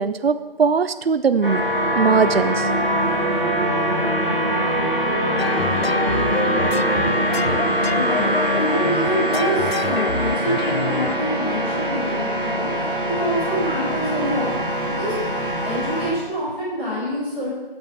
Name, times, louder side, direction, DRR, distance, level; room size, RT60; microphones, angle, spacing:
voice 1, 0.0-1.6 1.9-2.7, right 5 dB, 80° right, 13 dB, 0.5 m, -20 dB
sound 1, 1.4-16.1, right 1 dB, 60° right, 2.0 m, -23 dB
sound 2, 5.4-11.2, left 5 dB, 80° left, 0.5 m, -27 dB
voice 2, 7.9-12.9 13.1-14.5 14.8-15.1 15.6-17.5, equal, 10° right, -15 dB, 2.2 m, -26 dB
8.6 x 5.5 x 5.6 m, 1.2 s
figure-of-eight pair, 175°, 30 cm